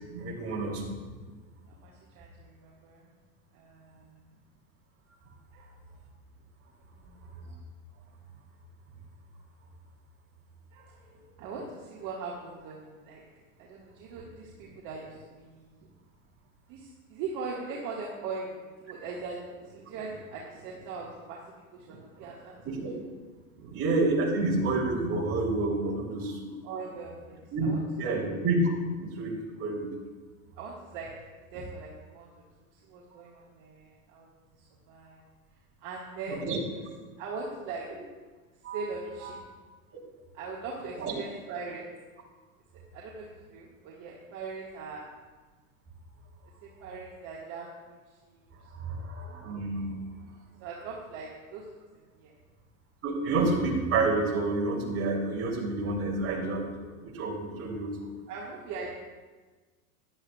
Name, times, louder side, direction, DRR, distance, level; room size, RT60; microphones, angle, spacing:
voice 1, 0.1-0.9 22.6-22.9 23.7-26.6 27.5-27.7 28.0-28.7 29.0-29.9 36.3-36.6 38.6-38.8 41.0-41.1 48.7-49.9 53.0-58.0, right 2 dB, 30° right, -2 dB, 3.2 m, -29 dB
voice 2, 1.7-3.1 3.5-4.2 5.5-5.8 6.9-7.2 10.7-13.2 13.6-15.7 16.7-21.4 21.7-22.7 23.6-23.8 26.6-28.2 30.6-31.1 31.5-32.3 32.7-34.3 34.9-35.2 35.8-37.9 38.7-39.4 40.3-41.8 42.9-45.1 46.8-47.7 48.2-48.5 48.9-49.1 50.6-51.6 51.9-52.3 58.3-58.9, right 4 dB, 50° right, -4 dB, 1.8 m, -40 dB
14.0 x 11.0 x 2.4 m, 1.3 s
hypercardioid pair, 105°, 42 cm